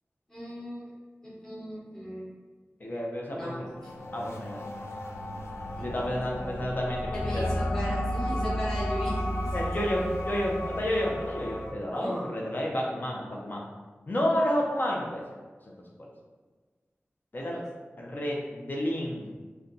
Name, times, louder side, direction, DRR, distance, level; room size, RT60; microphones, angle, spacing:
voice 1, 0.3-0.9 1.2-2.3 3.3-3.5 3.8-3.9 4.3-4.4 5.8-6.1 6.3-6.5 7.1-10.0 11.9-12.2 17.4-17.5, equal, 10° left, -8 dB, 0.9 m, -37 dB
voice 2, 2.8-3.6 4.1-4.6 5.8-7.6 9.5-13.7 14.1-15.2 15.7-16.1 17.3-17.6 18.0-19.3, equal, 45° left, -2 dB, 0.6 m, -30 dB
sound 1, 3.4-11.7, left 1 dB, 85° left, 0.4 m, -33 dB
2.6 x 2.2 x 3.8 m, 1.3 s
wide cardioid pair, 80°, 5 cm